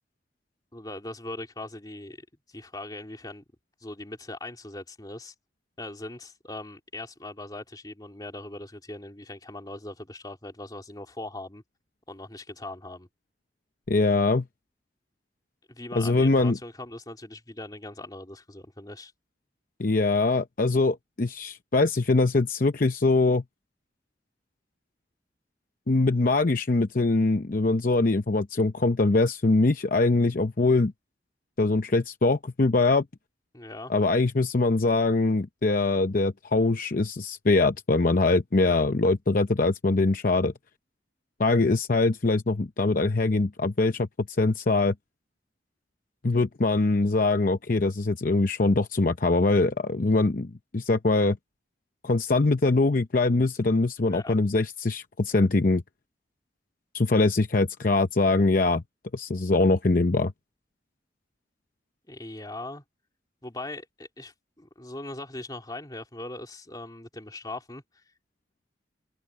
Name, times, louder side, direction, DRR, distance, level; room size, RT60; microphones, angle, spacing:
voice 1, 0.7-2.2 2.5-3.4 3.8-5.3 5.8-11.6 12.1-13.1 15.7-19.1 33.5-33.9 54.0-54.4 62.1-62.8 63.4-67.8, left 2 dB, 20° left, 3.0 m, -40 dB
voice 2, 13.9-14.5 16.0-16.6 19.8-23.4 25.9-30.9 31.6-33.0 33.9-40.5 41.4-44.9 46.2-51.4 52.0-55.8 56.9-58.8 59.1-60.3, left 3 dB, 50° left, 0.7 m, -23 dB
head